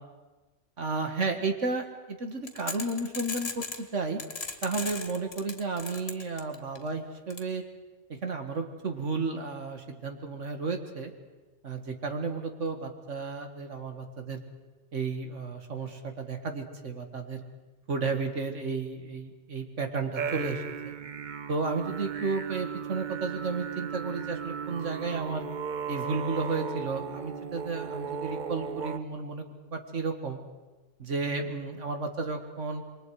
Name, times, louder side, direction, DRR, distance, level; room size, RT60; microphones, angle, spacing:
voice 1, 0.8-4.2 4.6-7.6 8.1-11.1 11.6-14.4 14.9-17.4 17.9-20.9 21.5-25.5 25.9-30.4 31.0-32.8, right 4 dB, 80° right, 5 dB, 2.1 m, -33 dB
sound 1, 2.5-3.8 4.2-6.8 7.3-7.4, left 4 dB, 60° left, 2.1 m, -36 dB
sound 2, 20.1-29.0, right 7 dB, 45° right, 0.8 m, -36 dB
27.5 x 23.0 x 4.9 m, 1.2 s
omnidirectional pair, 1.2 m